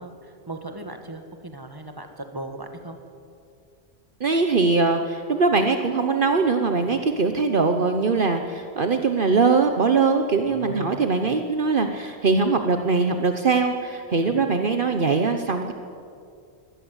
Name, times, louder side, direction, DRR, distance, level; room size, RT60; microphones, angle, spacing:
voice 1, 0.0-3.0 6.8-7.0 10.5-10.9 11.2-11.4 14.2-14.5, right 1 dB, 20° right, 6 dB, 2.1 m, -38 dB
voice 2, 4.2-15.7, right 4 dB, 55° right, 6 dB, 1.3 m, -21 dB
24.0 x 18.5 x 8.1 m, 2.4 s
omnidirectional pair, 1.1 m